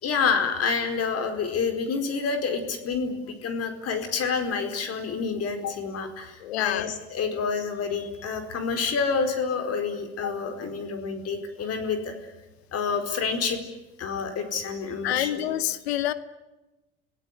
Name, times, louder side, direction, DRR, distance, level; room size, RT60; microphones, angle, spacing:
voice 1, 0.0-12.1 12.7-13.6 14.0-15.4, left 5 dB, 50° left, 7 dB, 4.6 m, -28 dB
voice 2, 6.4-6.9 15.0-16.1, left 13 dB, 90° left, 14 dB, 1.4 m, -27 dB
27.0 x 17.5 x 9.9 m, 1.1 s
hypercardioid pair, 80°, 31 cm